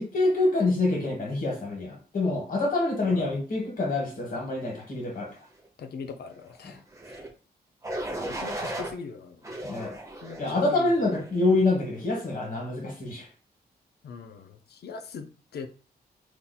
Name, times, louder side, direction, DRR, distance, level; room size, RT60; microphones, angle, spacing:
voice 1, 0.0-5.3 6.6-6.7 9.6-9.9 10.4-13.3, left 2 dB, 55° left, 0 dB, 1.4 m, -26 dB
voice 2, 5.8-6.8 8.3-9.4 10.2-11.0 14.0-15.7, left 5 dB, 75° left, 7 dB, 0.5 m, -40 dB
sound 1, 6.9-7.3 7.8-8.9 9.4-10.5 11.1-11.4, right 1 dB, 20° right, 0.7 m, -35 dB
4.0 x 2.8 x 2.3 m, 0.38 s
wide cardioid pair, 120°, 17 cm